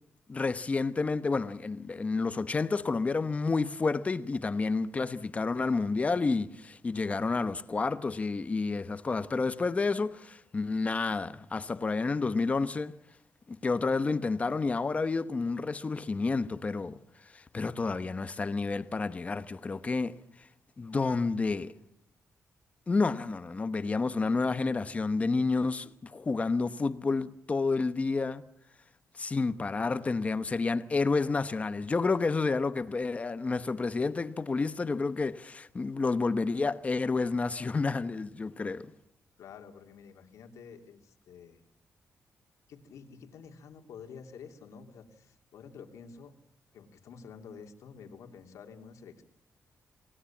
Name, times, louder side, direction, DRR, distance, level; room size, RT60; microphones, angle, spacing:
voice 1, 0.3-12.9 13.5-17.0 17.3-20.2 20.8-21.7 22.9-28.4 29.1-38.9, left 4 dB, 25° left, 1.1 m, -30 dB
voice 2, 39.4-41.6 42.7-46.3 46.7-49.2, left 6 dB, 85° left, 3.0 m, -49 dB
27.5 x 18.0 x 7.3 m
cardioid pair, 140°, 5 cm